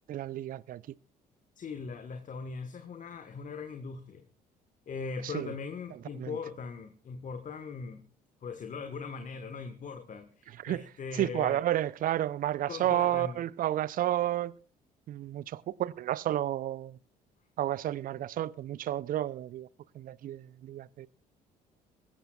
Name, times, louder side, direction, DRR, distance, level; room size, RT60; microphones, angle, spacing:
voice 1, 0.1-0.8 5.2-5.5 6.1-6.4 10.6-10.8 11.1-14.5 15.1-17.0 17.6-19.7 19.9-21.1, right 12 dB, 45° right, 0.6 m, -31 dB
voice 2, 1.6-4.2 4.9-8.0 8.4-11.6 12.7-13.4, left 5 dB, 40° left, 1.4 m, -40 dB
24.0 x 14.5 x 2.4 m
figure-of-eight pair, 50°, 20 cm